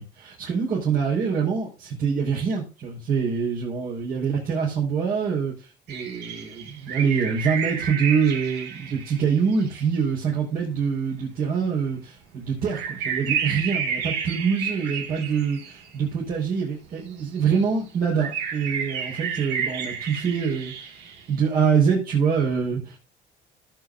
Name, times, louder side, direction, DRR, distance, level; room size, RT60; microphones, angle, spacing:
voice 1, 0.0-5.5 5.9-20.7 21.3-23.0, right 6 dB, 60° right, -4 dB, 4.9 m, -25 dB
sound 1, 5.9-9.8 11.6-11.7 12.7-16.1 17.2-17.7 18.1-21.2, right 7 dB, 90° right, 2.1 m, -31 dB
17.5 x 7.8 x 2.6 m, 0.32 s
cardioid pair, 110°, 17 cm